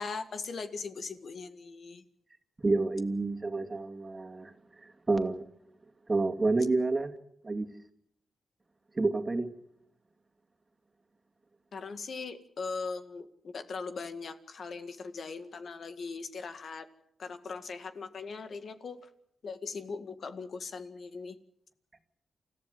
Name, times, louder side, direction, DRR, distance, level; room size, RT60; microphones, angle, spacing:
voice 1, 0.0-2.0 11.7-16.8 17.2-19.0 19.4-21.4, left 4 dB, 65° left, 8 dB, 1.9 m, -40 dB
voice 2, 2.6-4.5 4.8-5.4 6.1-7.1 7.4-7.7 8.9-9.5, right 3 dB, 30° right, 6 dB, 2.3 m, -29 dB
29.0 x 14.5 x 7.9 m, 0.76 s
cardioid pair, 80°, 0 cm